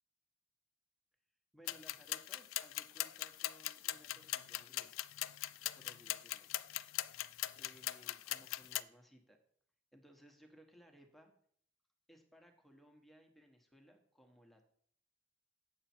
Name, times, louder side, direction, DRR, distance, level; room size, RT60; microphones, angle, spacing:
voice 1, 1.5-5.0 5.8-6.5 7.5-9.4 9.9-11.3 12.1-14.6, equal, ahead, 3 dB, 1.1 m, -62 dB
sound 1, 1.7-8.8, left 15 dB, 80° left, 0.4 m, -41 dB
8.2 x 6.6 x 4.3 m, 0.62 s
head